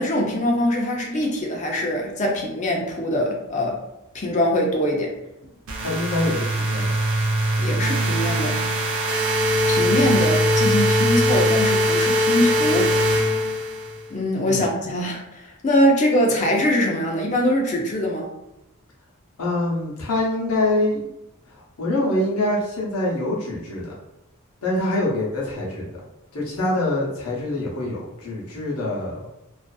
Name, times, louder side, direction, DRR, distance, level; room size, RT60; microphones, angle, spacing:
voice 1, 0.0-3.8 4.1-5.1 7.6-8.6 9.7-12.9 14.1-18.3, left 1 dB, 30° left, 0 dB, 0.4 m, -22 dB
sound 1, 5.7-14.0, equal, 60° right, 0.5 m, -21 dB
voice 2, 5.8-6.9 14.5-14.7 19.4-21.1 21.5-23.9 24.6-25.9 26.3-29.2, left 1 dB, 80° left, -4 dB, 0.8 m, -25 dB
2.5 x 2.4 x 2.3 m, 0.91 s
head